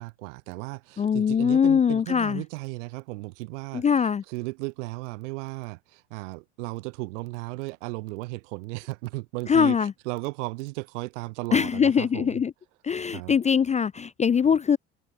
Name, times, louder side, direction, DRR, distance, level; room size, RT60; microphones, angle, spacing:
voice 1, 0.0-3.9 4.3-12.4 13.1-13.3, right 25 dB, 80° right, 4.6 m, -35 dB
voice 2, 1.0-2.4 3.7-4.2 9.5-9.9 11.5-12.5 12.8-14.8, left 7 dB, 20° left, 0.4 m, -22 dB
hypercardioid pair, 65°, 36 cm